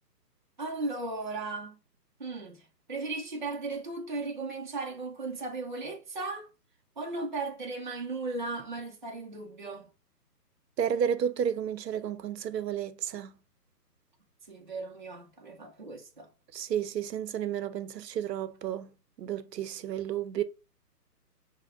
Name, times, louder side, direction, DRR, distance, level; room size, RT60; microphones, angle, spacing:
voice 1, 0.6-1.8 2.2-6.5 7.0-9.9 14.5-16.3, right 3 dB, 30° right, 0.5 m, -36 dB
voice 2, 10.8-13.4 16.5-20.4, right 9 dB, 80° right, 0.6 m, -32 dB
6.0 x 2.1 x 2.4 m
hypercardioid pair, 165°, 49 cm